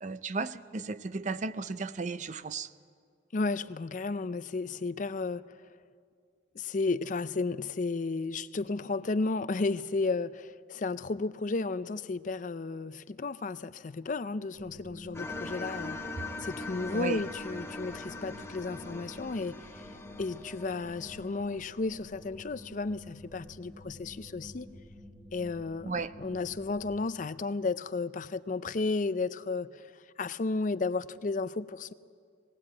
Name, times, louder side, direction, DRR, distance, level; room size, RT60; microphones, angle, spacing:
voice 1, 0.0-2.7 16.9-17.2 25.9-26.1, right 4 dB, 40° right, 0.5 m, -34 dB
voice 2, 3.3-5.6 6.5-16.0 16.4-19.9 20.2-24.7 25.3-31.9, left 3 dB, 45° left, 0.5 m, -33 dB
sound 1, 14.5-27.0, left 1 dB, 15° right, 1.3 m, -50 dB
sound 2, 15.1-22.3, left 2 dB, 15° left, 1.7 m, -42 dB
20.5 x 18.5 x 8.7 m
head